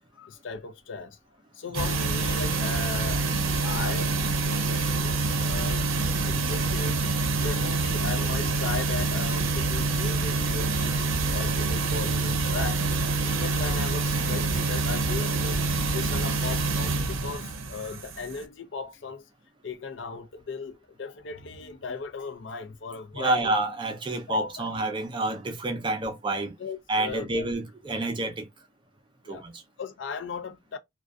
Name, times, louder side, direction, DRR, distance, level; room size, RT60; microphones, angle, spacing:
voice 1, 0.1-1.2 1.5-3.4 3.6-5.9 6.2-6.9 7.4-15.6 15.9-19.3 19.6-23.5 24.3-24.7 26.6-27.5 29.2-29.5 29.8-30.8, left 5 dB, 65° left, 0.5 m, -37 dB
sound 1, 1.7-18.4, right 3 dB, 85° right, 0.6 m, -26 dB
voice 2, 23.1-26.5 26.9-28.5 29.3-29.6, right 2 dB, 25° right, 0.5 m, -28 dB
2.4 x 2.2 x 2.3 m
head